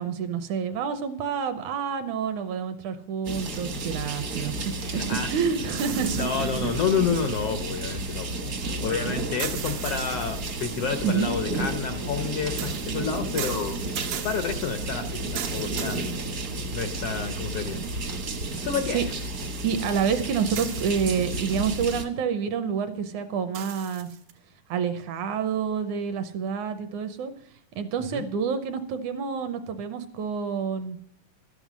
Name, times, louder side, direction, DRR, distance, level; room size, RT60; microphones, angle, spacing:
voice 1, 0.0-6.7 11.0-11.4 18.9-19.1 19.6-24.1 24.7-27.3 27.8-31.0, right 6 dB, 75° right, 9 dB, 2.0 m, -28 dB
sound 1, 3.2-22.0, right 2 dB, 60° right, 0.9 m, -32 dB
voice 2, 4.8-5.3 6.0-16.1 16.7-17.8 18.6-19.0 28.1-28.3, left 6 dB, 80° left, 8 dB, 1.3 m, -30 dB
sound 2, 5.8-7.9 9.4-11.0 12.6-16.9 17.5-17.6 20.6-21.4 23.5-24.3, right 10 dB, 90° right, 2.9 m, -38 dB
12.5 x 9.2 x 6.2 m, 0.65 s
omnidirectional pair, 3.9 m